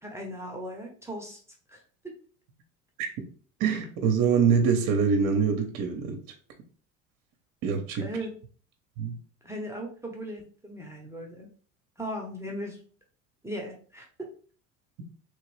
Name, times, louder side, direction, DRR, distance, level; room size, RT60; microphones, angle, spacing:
voice 1, 0.0-1.4 1.7-1.8 8.0-8.3 9.4-11.5 12.0-12.8 13.4-14.1, equal, 5° right, 0 dB, 0.9 m, -37 dB
voice 2, 3.6-6.2 7.6-8.1 9.0-9.1, right 6 dB, 55° right, 5 dB, 0.8 m, -24 dB
3.1 x 2.9 x 3.1 m, 0.44 s
hypercardioid pair, 70°, 40 cm